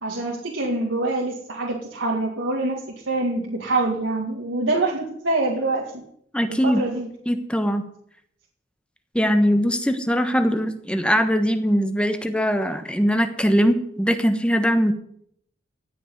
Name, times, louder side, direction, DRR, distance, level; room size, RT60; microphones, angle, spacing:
voice 1, 0.0-6.0 6.5-7.1, right 2 dB, 90° right, -2 dB, 2.2 m, -25 dB
voice 2, 6.3-6.8 7.3-7.8 9.1-14.9, equal, 5° left, 8 dB, 1.2 m, -21 dB
17.0 x 6.2 x 9.6 m, 0.69 s
head